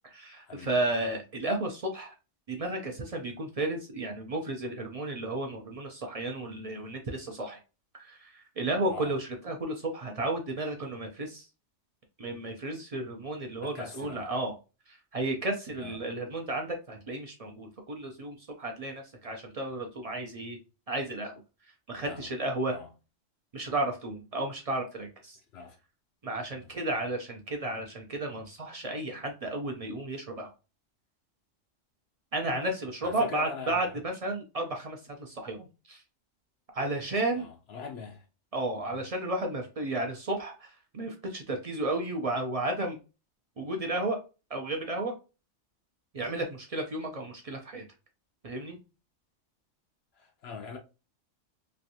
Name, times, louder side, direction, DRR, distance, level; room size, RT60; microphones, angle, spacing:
voice 1, 0.0-2.1 2.5-7.6 7.9-11.5 12.2-14.5 14.9-20.6 20.9-21.4 21.9-22.7 23.5-25.4 26.2-30.5 32.3-36.0 36.7-37.5 38.5-43.0 43.6-44.2 44.5-45.1 46.1-47.8 48.4-48.8, right 2 dB, 55° right, 0.4 m, -33 dB
voice 2, 13.6-14.3 15.7-16.0 21.9-22.3 22.7-22.9 25.5-25.8 26.5-26.7 33.0-33.9 37.4-38.3 38.9-39.0 50.1-50.8, left 5 dB, 65° left, 0.7 m, -42 dB
3.1 x 2.5 x 2.7 m
omnidirectional pair, 1.3 m